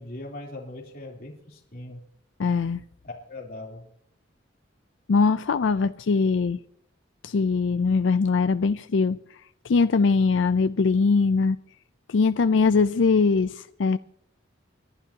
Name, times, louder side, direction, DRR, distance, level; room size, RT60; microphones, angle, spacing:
voice 1, 0.0-2.0 3.3-3.8, left 2 dB, 50° left, -3 dB, 3.3 m, -40 dB
voice 2, 2.4-2.8 5.1-6.6 7.2-9.2 9.6-11.6 12.1-14.0, left 4 dB, 75° left, 12 dB, 0.4 m, -21 dB
29.0 x 12.0 x 2.9 m, 0.68 s
head